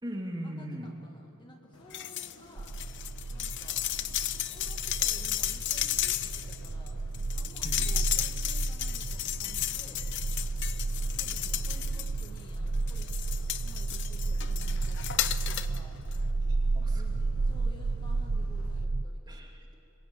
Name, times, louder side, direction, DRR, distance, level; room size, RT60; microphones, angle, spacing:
voice 1, 0.0-0.9 7.6-8.0 16.5-17.2 19.3-19.8, equal, 20° right, 0 dB, 2.9 m, -40 dB
voice 2, 0.6-2.8 3.3-3.9 4.5-7.0 7.3-10.1 11.1-16.0 16.9-19.5, left 1 dB, 20° left, 1 dB, 1.8 m, -54 dB
sound 1, 1.7-18.8, left 1 dB, 70° left, 1.5 m, -54 dB
sound 2, 1.9-2.3 2.6-12.4 12.9-15.8 16.1-16.2, left 13 dB, 55° left, 0.7 m, -34 dB
sound 3, 2.6-19.0, right 3 dB, 45° right, 0.6 m, -32 dB
26.5 x 22.0 x 9.1 m, 3.0 s
head